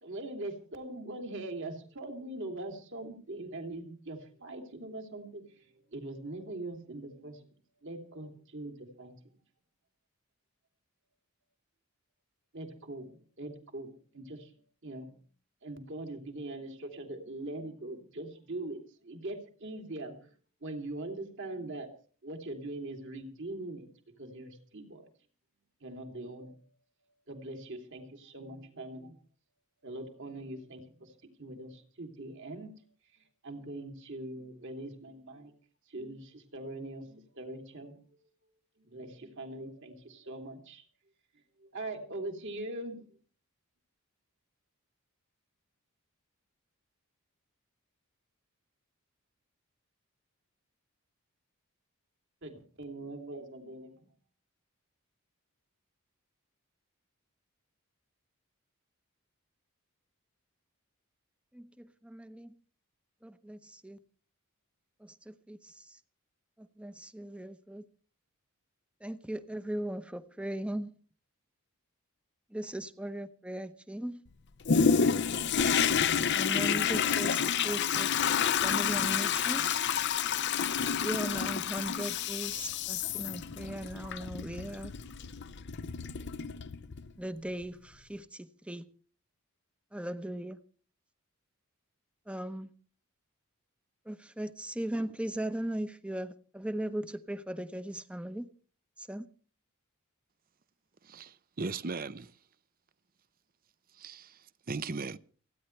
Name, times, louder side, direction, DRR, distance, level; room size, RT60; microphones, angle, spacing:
voice 1, 0.0-7.5 7.8-9.1 12.5-14.5 14.8-15.2 15.6-20.4 20.6-21.9 22.2-23.9 24.2-25.1 25.8-26.6 27.3-29.2 29.8-32.7 33.1-35.5 35.9-38.0 38.8-40.8 41.6-43.2 52.4-54.1, right 2 dB, 55° right, 2.9 m, -42 dB
voice 2, 61.5-62.5 63.2-64.0 65.0-66.0 66.6-67.8 69.0-70.9 72.5-74.2 76.3-78.1 78.6-79.8 81.0-84.9 87.2-88.8 89.9-90.6 92.3-92.7 94.0-98.5 99.0-99.3, right 1 dB, 5° right, 0.8 m, -38 dB
Toilet flush, 74.7-87.1 87.6-87.7, left 7 dB, 50° left, 0.6 m, -29 dB
voice 3, 101.0-102.4 103.9-105.2, right 4 dB, 40° right, 0.6 m, -38 dB
29.0 x 10.5 x 3.3 m
head